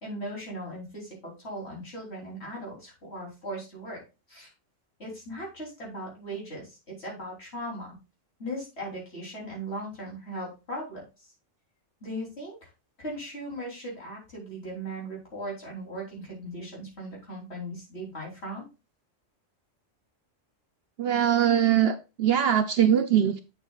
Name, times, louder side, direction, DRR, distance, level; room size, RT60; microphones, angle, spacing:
voice 1, 0.0-4.0 4.3-4.5 5.0-7.9 8.4-11.3 12.0-12.7 13.0-18.7, right 1 dB, 55° left, -3 dB, 3.9 m, -38 dB
voice 2, 21.0-23.4, right 9 dB, 60° right, 10 dB, 0.7 m, -22 dB
8.0 x 7.4 x 2.4 m, 0.28 s
omnidirectional pair, 1.3 m